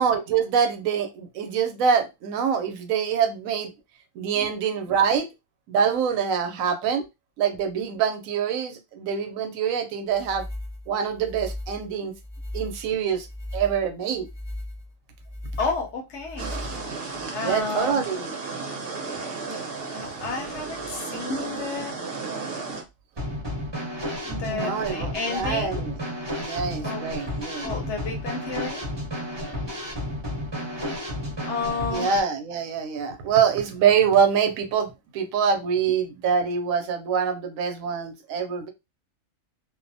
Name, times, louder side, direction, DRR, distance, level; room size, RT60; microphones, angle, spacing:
voice 1, 0.0-3.7 4.2-5.3 5.7-7.0 7.4-10.5 10.9-12.1 12.5-13.3 13.5-14.3 17.4-18.3 19.9-20.1 24.5-25.9 26.4-27.7 31.9-38.7, right 7 dB, 75° right, 1.0 m, -25 dB
sound 1, 10.1-17.2, left 1 dB, 15° left, 0.7 m, -37 dB
voice 2, 15.6-16.5 17.3-18.0 19.9-22.0 24.2-25.8 26.4-26.6 26.8-27.1 27.6-28.9 30.9-31.0 31.4-32.1, left 4 dB, 60° left, 0.9 m, -31 dB
sound 2, 16.4-22.8, right 4 dB, 50° right, 0.8 m, -34 dB
Drum kit / Snare drum, 23.2-32.2, equal, 20° right, 0.8 m, -32 dB
2.5 x 2.1 x 2.5 m
omnidirectional pair, 1.5 m